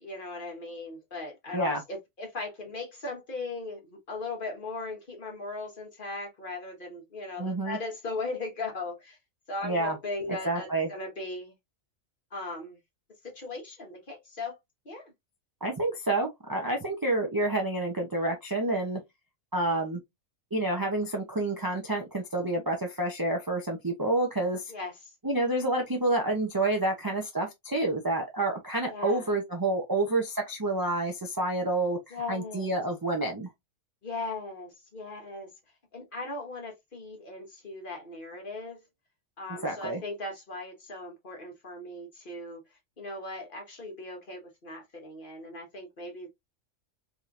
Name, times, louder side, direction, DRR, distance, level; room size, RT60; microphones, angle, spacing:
voice 1, 0.0-9.2 9.5-11.5 12.3-12.8 13.2-14.6 14.8-15.1 24.7-24.9 28.9-29.3 32.1-32.8 34.0-35.5 35.9-38.8 39.4-42.6 43.0-46.3, left 3 dB, 40° left, 1.3 m, -38 dB
voice 2, 7.4-7.8 9.6-10.0 10.4-10.9 15.6-19.0 19.5-20.0 20.5-24.7 25.2-33.5 39.5-40.0, right 2 dB, 25° right, 0.4 m, -29 dB
3.6 x 2.9 x 2.4 m
omnidirectional pair, 1.3 m